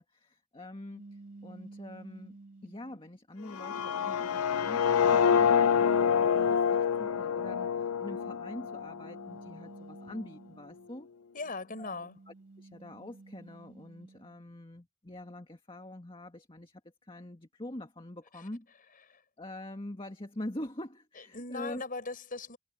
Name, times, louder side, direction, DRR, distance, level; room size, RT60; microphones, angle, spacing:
voice 1, 0.0-2.4 2.6-11.1 11.8-18.7 19.4-21.8, left 1 dB, 25° left, 1.9 m, -44 dB
sound 1, 0.9-3.1 3.7-6.9 8.0-11.0 11.4-14.4, right 3 dB, 40° right, 2.5 m, -53 dB
sound 2, 3.4-9.4, left 7 dB, 85° left, 0.6 m, -27 dB
voice 2, 11.3-12.2 18.3-18.4 19.1-19.2 21.3-22.6, left 3 dB, 40° left, 5.7 m, -39 dB
head